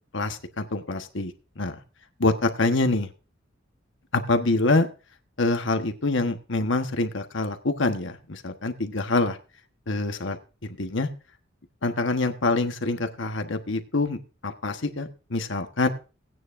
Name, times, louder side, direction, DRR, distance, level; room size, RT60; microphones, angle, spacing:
voice 1, 0.1-1.7 2.2-3.1 4.1-4.9 5.4-9.4 9.9-10.4 10.8-11.1 11.8-15.9, left 2 dB, 65° left, 7 dB, 1.3 m, -25 dB
17.5 x 9.3 x 2.6 m, 0.33 s
head